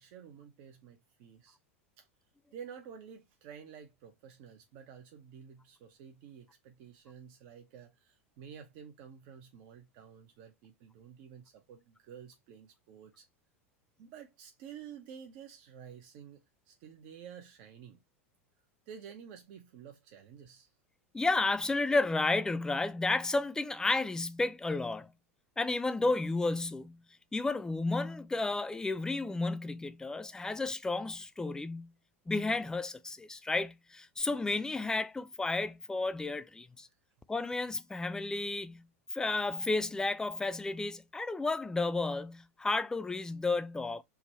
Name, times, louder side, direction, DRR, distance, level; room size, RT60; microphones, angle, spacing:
voice 1, 0.0-1.6 2.0-2.1 2.5-13.3 14.0-18.0 18.9-20.7, right 8 dB, 50° right, 0.6 m, -51 dB
voice 2, 21.1-25.1 25.6-27.0 27.3-31.9 32.3-36.9 37.3-38.8 39.1-44.0, left 3 dB, 10° left, 0.3 m, -32 dB
3.5 x 2.1 x 4.2 m
figure-of-eight pair, 90°, 7 cm